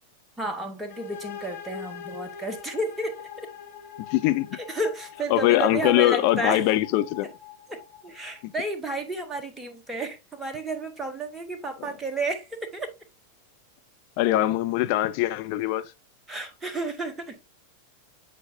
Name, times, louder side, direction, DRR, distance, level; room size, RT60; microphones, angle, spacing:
voice 1, 0.4-3.5 4.5-6.6 7.7-12.9 16.3-17.4, right 2 dB, 10° right, 1.4 m, -32 dB
sound 1, 0.9-8.5, left 7 dB, 65° left, 3.4 m, -43 dB
voice 2, 4.1-4.6 5.3-7.3 8.4-8.5 14.2-15.8, left 15 dB, 45° left, 0.6 m, -22 dB
8.9 x 4.7 x 2.6 m
figure-of-eight pair, 90°, 0 cm